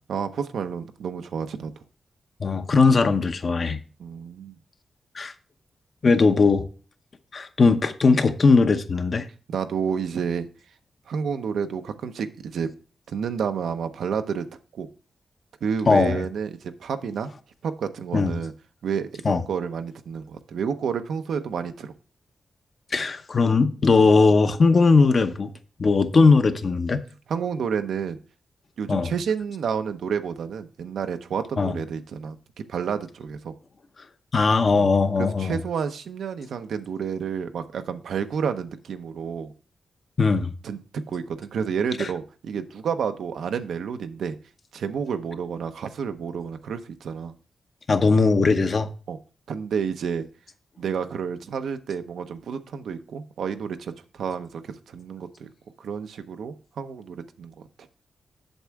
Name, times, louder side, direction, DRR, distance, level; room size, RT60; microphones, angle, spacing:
voice 1, 0.1-1.7 4.0-4.6 9.5-10.5 11.1-12.7 13.1-14.5 14.7-14.9 15.6-17.3 17.6-18.5 18.8-21.9 27.3-28.2 28.8-32.4 32.7-33.5 34.7-34.9 35.2-39.5 40.6-40.8 41.1-44.4 44.7-47.3 49.1-49.2 49.5-50.3 50.8-55.5 55.8-57.5, right 6 dB, 90° right, 0.7 m, -30 dB
voice 2, 2.4-3.8 5.1-5.3 6.0-6.7 7.3-9.3 15.9-16.2 18.1-18.3 19.2-19.4 22.9-25.5 25.8-27.0 28.9-29.1 31.6-31.8 34.3-35.6 40.2-40.5 42.0-42.1 47.9-48.9, left 4 dB, 40° left, 0.8 m, -19 dB
8.0 x 7.3 x 3.5 m
wide cardioid pair, 125°, 0 cm